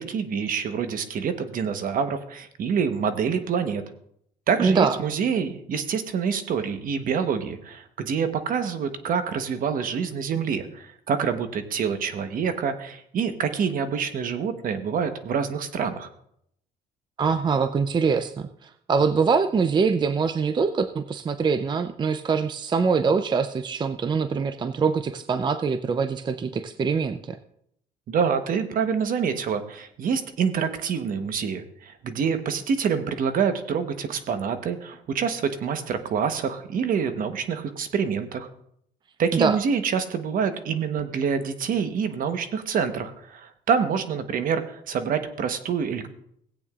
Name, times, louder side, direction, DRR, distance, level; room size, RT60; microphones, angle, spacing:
voice 1, 0.0-3.8 4.5-16.1 28.1-38.5 39.2-46.1, right 6 dB, 55° right, 9 dB, 1.1 m, -26 dB
voice 2, 4.6-5.0 17.2-27.4 39.3-39.6, right 5 dB, 25° right, 10 dB, 0.5 m, -24 dB
17.5 x 8.7 x 2.4 m, 0.71 s
cardioid pair, 110°, 17 cm